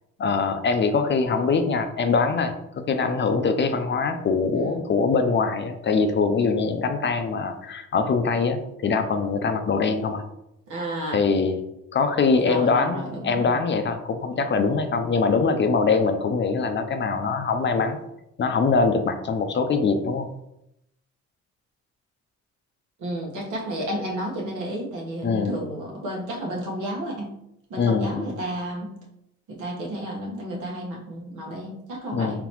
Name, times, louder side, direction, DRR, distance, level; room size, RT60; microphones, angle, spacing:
voice 1, 0.2-2.5 2.9-10.2 11.1-11.6 11.9-18.0 18.4-20.3 25.2-25.6 27.8-28.3 32.1-32.4, left 4 dB, 40° left, 7 dB, 0.5 m, -23 dB
voice 2, 10.7-11.2 12.4-13.6 23.0-27.3 27.7-28.9 29.5-32.5, right 1 dB, 80° right, -2 dB, 1.3 m, -32 dB
3.9 x 3.9 x 3.0 m, 0.82 s
cardioid pair, 90°, 30 cm